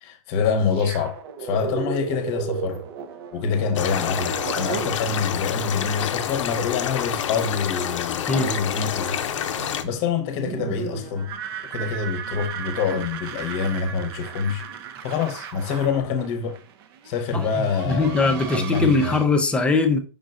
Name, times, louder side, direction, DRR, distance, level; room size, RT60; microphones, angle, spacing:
voice 1, 0.0-2.8 3.3-9.2 9.8-11.3 11.7-14.6 15.0-16.6 17.0-19.2, left 6 dB, 40° left, 0.8 m, -26 dB
sound 1, 0.7-5.7 5.9-6.0 8.4-19.3, right 7 dB, 50° right, 0.5 m, -35 dB
sound 2, 3.8-9.8, left 9 dB, 85° left, 0.6 m, -28 dB
voice 2, 17.3-20.0, left 3 dB, 5° left, 0.5 m, -21 dB
5.1 x 3.9 x 2.4 m
hypercardioid pair, 145°, 16 cm